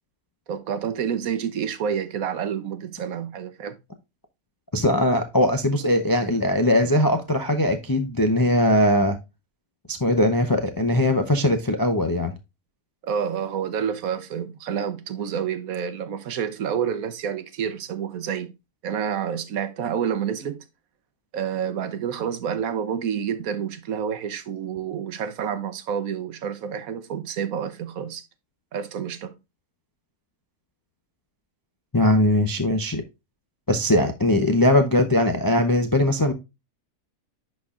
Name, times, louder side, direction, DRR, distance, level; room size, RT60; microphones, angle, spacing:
voice 1, 0.5-3.8 13.0-18.5 18.8-20.6 21.3-28.2 28.7-29.4, right 8 dB, 70° right, 1.2 m, -28 dB
voice 2, 4.7-9.2 9.9-12.3 31.9-33.0 33.7-36.3, left 1 dB, 30° left, 0.3 m, -20 dB
11.0 x 4.3 x 2.4 m
omnidirectional pair, 1.6 m